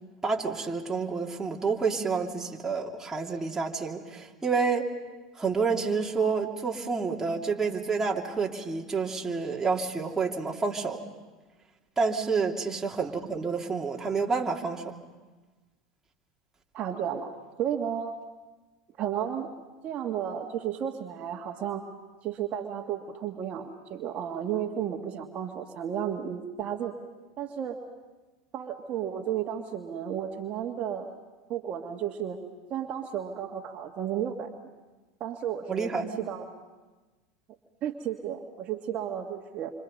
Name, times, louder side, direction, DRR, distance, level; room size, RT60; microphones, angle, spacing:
voice 1, 0.2-4.9 5.4-11.0 12.0-14.9 35.7-36.1, right 4 dB, 15° right, -1 dB, 2.8 m, -29 dB
voice 2, 16.7-17.3 17.6-18.2 19.0-19.5 19.8-21.8 22.2-26.9 27.4-27.8 28.5-31.1 31.5-32.4 32.7-34.5 35.2-36.4 37.8-39.7, right 9 dB, 45° right, 2 dB, 1.8 m, -33 dB
28.0 x 25.5 x 5.4 m, 1.2 s
hypercardioid pair, 95°, 3 cm